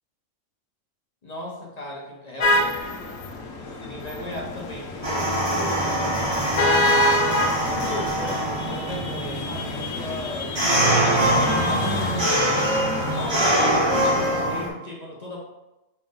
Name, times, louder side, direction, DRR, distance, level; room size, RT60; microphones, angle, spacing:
voice 1, 1.2-3.0 3.6-5.8 7.5-10.6 11.2-12.6 13.1-15.4, left 1 dB, 40° left, -2 dB, 0.8 m, -36 dB
sound 1, 2.4-14.1, left 1 dB, 80° left, 1.0 m, -27 dB
sound 2, 5.0-14.7, right 1 dB, 25° right, 0.9 m, -24 dB
5.3 x 2.6 x 3.7 m, 0.96 s
omnidirectional pair, 1.3 m